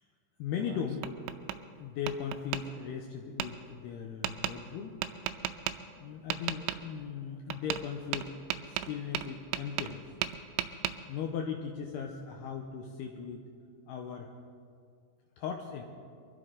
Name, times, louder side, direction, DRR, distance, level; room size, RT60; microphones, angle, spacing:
voice 1, 0.4-1.1 1.8-5.0 6.0-8.3 8.7-10.0 11.1-13.4 13.9-14.3 15.4-15.8, left 7 dB, 85° left, 3 dB, 2.4 m, -38 dB
Tap, 0.5-1.6 2.1-2.6 3.4-3.5 4.2-4.5 5.0-5.8 6.3-6.8 7.5-7.9 8.1-10.0 10.2-10.9, right 12 dB, 90° right, 3.1 m, -35 dB
23.5 x 13.5 x 3.8 m, 2.3 s
omnidirectional pair, 5.6 m